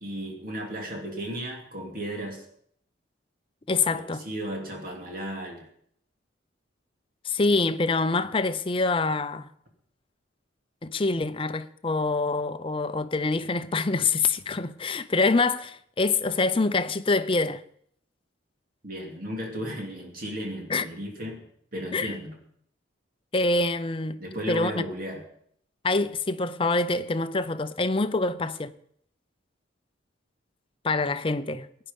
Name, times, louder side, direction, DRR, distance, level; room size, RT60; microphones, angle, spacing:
voice 1, 0.0-2.4 3.9-5.7 18.8-21.4 21.7-22.4 24.2-25.2, equal, 45° right, 2.9 m, -35 dB
voice 2, 3.7-4.2 7.2-9.5 10.8-17.6 20.7-20.9 21.9-22.1 23.3-24.2 24.5-24.8 25.8-28.7 30.8-31.7, left 3 dB, 25° left, 0.6 m, -25 dB
17.0 x 9.9 x 5.4 m
head